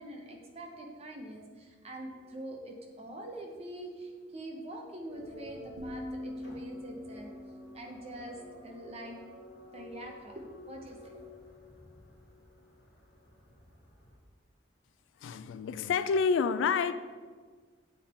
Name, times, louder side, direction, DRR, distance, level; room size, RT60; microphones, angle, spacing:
voice 1, 0.0-9.2 9.7-11.1, right 1 dB, 30° right, 1 dB, 0.8 m, -44 dB
sound 1, 5.1-14.2, left 1 dB, 55° left, 1.2 m, -52 dB
sound 2, 5.8-9.6, left 1 dB, 75° right, 0.7 m, -44 dB
voice 2, 15.2-16.9, left 5 dB, 90° left, 13 dB, 0.3 m, -28 dB
7.2 x 3.7 x 4.3 m, 1.5 s
head